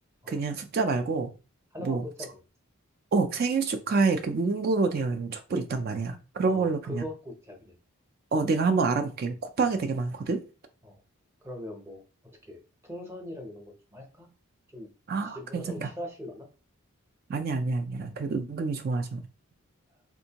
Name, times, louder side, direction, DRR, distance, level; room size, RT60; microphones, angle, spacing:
voice 1, 0.3-1.3 1.8-2.0 3.1-7.0 8.3-10.4 15.1-15.9 17.3-19.2, right 4 dB, 45° right, 0.3 m, -27 dB
voice 2, 1.7-2.4 6.5-7.8 8.5-8.6 10.8-11.0 11.4-12.0 12.4-14.3 14.7-14.9 15.2-16.5, left 1 dB, 10° right, 0.7 m, -41 dB
3.5 x 2.6 x 2.8 m
head